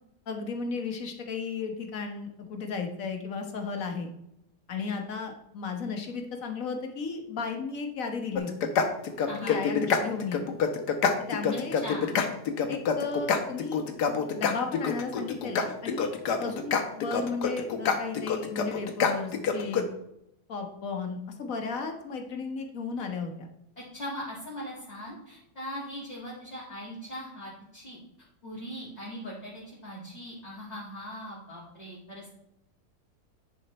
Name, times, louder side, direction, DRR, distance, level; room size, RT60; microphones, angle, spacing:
voice 1, 0.3-4.1 4.7-8.7 9.4-10.4 11.2-11.8 12.7-13.8 14.3-16.1 16.4-19.9 20.5-23.5, left 4 dB, 55° left, 4 dB, 1.6 m, -34 dB
sound 1, 8.4-19.8, left 6 dB, 85° left, 1.5 m, -27 dB
voice 2, 9.3-9.6 11.7-12.2 23.9-28.0 28.4-32.2, equal, 25° left, -8 dB, 2.3 m, -40 dB
9.9 x 5.1 x 4.3 m, 0.82 s
omnidirectional pair, 1.7 m